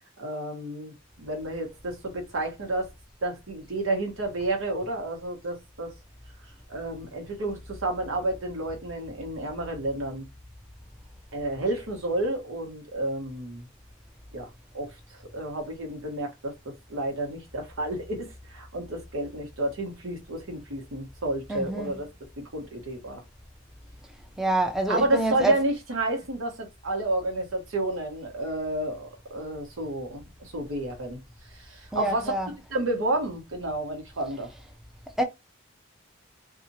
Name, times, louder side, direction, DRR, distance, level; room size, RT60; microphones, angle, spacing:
voice 1, 0.2-0.9 1.2-2.9 3.2-5.9 6.7-10.3 11.3-13.6 14.3-14.5 14.7-22.1 22.5-23.2 24.9-31.2 31.5-32.3 32.7-34.5, right 2 dB, 90° right, 1.1 m, -30 dB
voice 2, 21.5-21.9 24.4-25.5 31.9-32.5 35.2-35.3, right 2 dB, ahead, 0.5 m, -26 dB
2.8 x 2.4 x 2.7 m
head